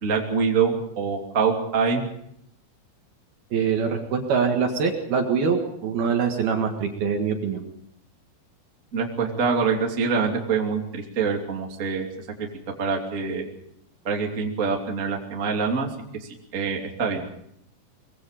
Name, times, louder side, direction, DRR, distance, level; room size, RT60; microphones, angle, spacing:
voice 1, 0.0-2.0 8.9-12.1 12.4-12.5 12.8-13.4 14.0-15.9 16.2-17.2, right 5 dB, 25° right, 1 dB, 2.0 m, -25 dB
voice 2, 3.5-7.6, right 6 dB, 60° right, 3 dB, 3.2 m, -24 dB
24.0 x 21.5 x 5.1 m, 0.72 s
omnidirectional pair, 5.7 m